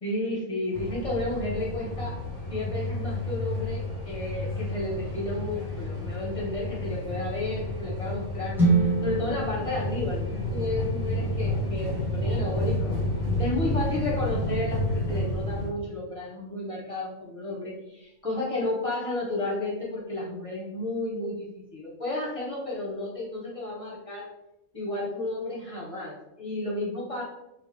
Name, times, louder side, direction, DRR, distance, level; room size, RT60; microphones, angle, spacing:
voice 1, 0.0-2.2 2.5-13.0 13.4-24.3 24.7-27.2, left 2 dB, 30° left, -4 dB, 0.9 m, -32 dB
sound 1, 0.7-15.7, left 1 dB, 55° right, 1.7 m, -31 dB
sound 2, 8.6-12.6, right 3 dB, ahead, 1.1 m, -28 dB
3.7 x 2.7 x 3.2 m, 0.89 s
omnidirectional pair, 1.3 m